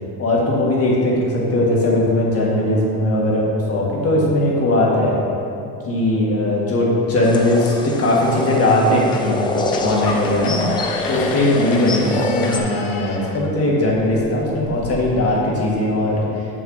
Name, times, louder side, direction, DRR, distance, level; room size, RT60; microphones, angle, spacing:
voice 1, 0.2-5.3 5.8-10.6 11.1-16.6, left 1 dB, 35° left, -4 dB, 1.6 m, -19 dB
sound 1, 7.2-12.6, left 3 dB, 15° left, 0.4 m, -25 dB
sound 2, 9.1-9.4 9.7-14.9, left 4 dB, 65° left, 1.0 m, -34 dB
7.1 x 6.1 x 3.9 m, 2.7 s
cardioid pair, 140°, 38 cm